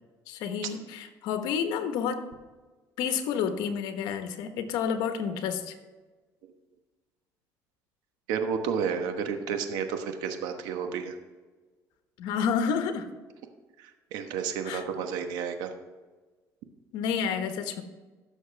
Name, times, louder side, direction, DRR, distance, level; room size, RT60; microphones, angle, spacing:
voice 1, 0.3-2.2 3.0-5.8 12.2-13.1 14.7-14.8 16.9-17.8, left 7 dB, 85° left, 7 dB, 1.1 m, -30 dB
voice 2, 8.3-11.2 13.8-15.7, right 6 dB, 85° right, 6 dB, 1.1 m, -31 dB
15.0 x 6.5 x 3.4 m, 1.3 s
cardioid pair, 105°, 7 cm